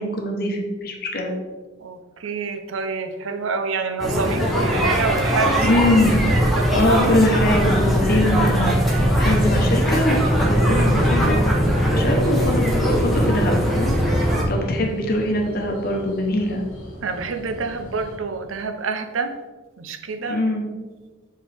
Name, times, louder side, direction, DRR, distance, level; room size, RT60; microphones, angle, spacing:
voice 1, 0.0-1.3 5.6-6.1 6.7-11.4 11.9-14.0 14.5-16.6 20.3-20.6, left 1 dB, 50° left, 2 dB, 0.9 m, -22 dB
voice 2, 1.8-5.7 6.3-6.9 11.8-12.0 17.0-19.3 19.8-20.4, right 4 dB, 85° right, 7 dB, 0.6 m, -27 dB
sound 1, 4.0-14.4, equal, ahead, 0.8 m, -20 dB
sound 2, 7.4-18.2, equal, 85° left, 1.6 m, -40 dB
7.4 x 3.7 x 3.4 m, 1.3 s
head